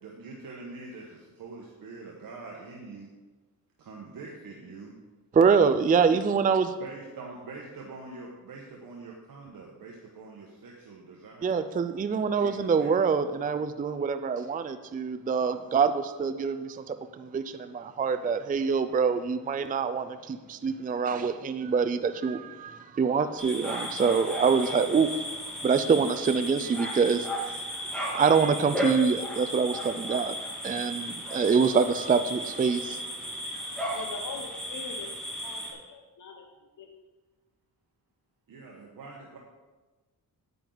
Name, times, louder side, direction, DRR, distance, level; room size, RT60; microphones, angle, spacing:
voice 1, 0.0-3.1 3.8-4.9 6.8-11.6 12.4-13.1 33.6-33.7 38.5-39.4, right 3 dB, 70° right, -2 dB, 1.3 m, -44 dB
voice 2, 5.3-6.7 11.4-25.3 25.6-30.4 30.6-33.0, right 5 dB, 25° right, 10 dB, 0.4 m, -25 dB
sound 1, 23.4-35.7, equal, ahead, 2.1 m, -35 dB
voice 3, 33.9-35.1 35.4-36.4 36.8-36.9, left 4 dB, 60° left, 3 dB, 1.0 m, -42 dB
9.3 x 9.2 x 4.0 m, 1.2 s
wide cardioid pair, 120°, 35 cm